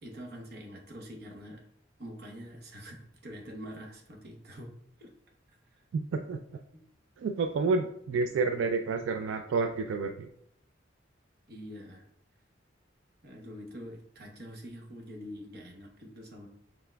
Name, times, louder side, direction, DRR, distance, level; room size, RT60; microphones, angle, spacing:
voice 1, 0.0-1.6 2.0-3.0 3.2-4.7 5.0-5.1 5.7-5.8 6.7-6.8 8.1-8.6 11.5-12.1 13.2-16.5, equal, 55° right, 1 dB, 0.9 m, -45 dB
voice 2, 5.9-6.4 7.2-10.3, right 4 dB, 85° right, 6 dB, 0.3 m, -29 dB
5.7 x 3.5 x 2.2 m, 0.74 s
head